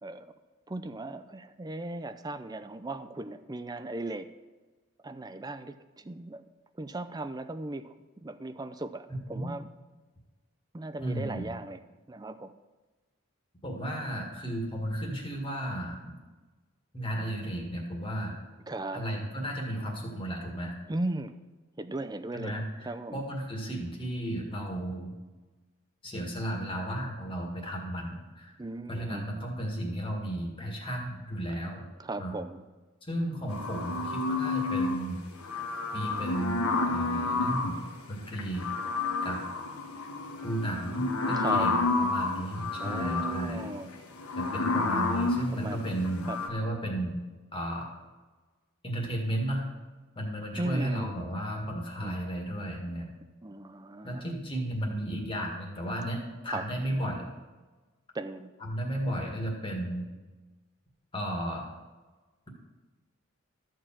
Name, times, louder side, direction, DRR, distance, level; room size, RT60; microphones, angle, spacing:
voice 1, 0.7-4.3 5.0-6.4 6.8-7.9 8.2-9.7 10.7-11.8 12.1-12.5 18.7-19.0 20.9-21.4 21.8-23.2 28.6-29.3 32.0-32.6 41.3-41.7 42.8-43.9 45.5-45.9 46.3-46.4 50.6-51.2 52.0-52.2 53.4-54.3 56.5-56.7 58.1-58.5, right 2 dB, 20° right, 11 dB, 0.4 m, -37 dB
voice 2, 11.0-11.5 13.6-16.1 16.9-18.3 18.9-20.7 22.3-22.6 23.1-25.1 26.0-28.5 28.9-31.8 32.2-32.3 33.0-35.2 35.9-36.6 36.9-37.8 38.1-38.6 39.2-39.4 40.4-43.7 44.4-47.2 47.5-47.9 48.8-49.7 50.2-53.1 54.0-57.3 58.6-60.1 61.1-61.7, right 1 dB, 25° left, 0 dB, 1.8 m, -34 dB
sound 1, 33.5-35.0 35.4-37.8 38.3-46.5, left 3 dB, 85° left, 1.2 m, -30 dB
13.5 x 4.6 x 7.4 m, 1.3 s
head